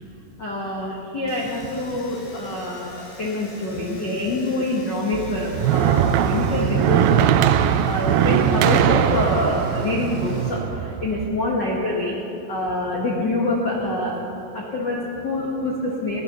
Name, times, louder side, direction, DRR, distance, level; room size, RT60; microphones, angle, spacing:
voice 1, 0.4-12.2 12.5-14.2 14.5-16.2, left 2 dB, 80° left, -4 dB, 1.0 m, -26 dB
Domestic sounds home sounds, 1.3-10.6 10.9-11.7, left 2 dB, 45° left, 3.3 m, -46 dB
sound 1, 5.1-11.3, right 10 dB, 85° right, 2.1 m, -20 dB
17.5 x 9.7 x 6.7 m, 2.9 s
omnidirectional pair, 4.8 m